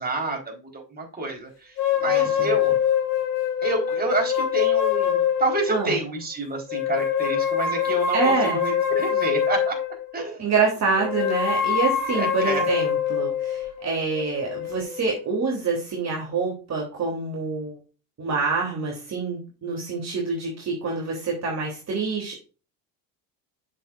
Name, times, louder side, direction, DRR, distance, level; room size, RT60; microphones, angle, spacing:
voice 1, 0.0-1.7 2.0-2.7 3.6-9.8 10.1-10.4 12.1-12.7, right 2 dB, 20° right, 1 dB, 4.3 m, -28 dB
sound 1, 1.8-6.0 6.7-10.1 11.0-15.3, left 8 dB, 90° left, 3.5 m, -24 dB
voice 2, 2.1-2.5 5.7-6.0 8.1-8.6 10.4-17.8 18.2-22.4, right 4 dB, 35° right, -1 dB, 3.3 m, -26 dB
8.3 x 7.1 x 2.6 m, 0.34 s
supercardioid pair, 95°, 45 cm